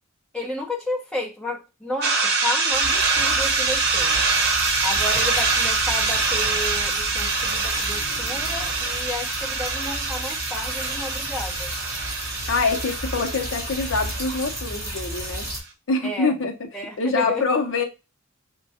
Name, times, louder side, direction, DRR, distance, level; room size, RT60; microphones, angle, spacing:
voice 1, 0.3-4.2 4.8-11.7 16.0-16.3 16.7-17.5, left 2 dB, 5° left, 0.9 m, -32 dB
sound 1, 2.0-15.4, right 4 dB, 50° right, 0.9 m, -25 dB
sound 2, 2.7-15.6, right 1 dB, 15° right, 2.7 m, -33 dB
voice 2, 12.5-15.5 15.9-16.5 17.0-17.8, left 4 dB, 60° left, 0.7 m, -24 dB
6.0 x 2.2 x 2.7 m
head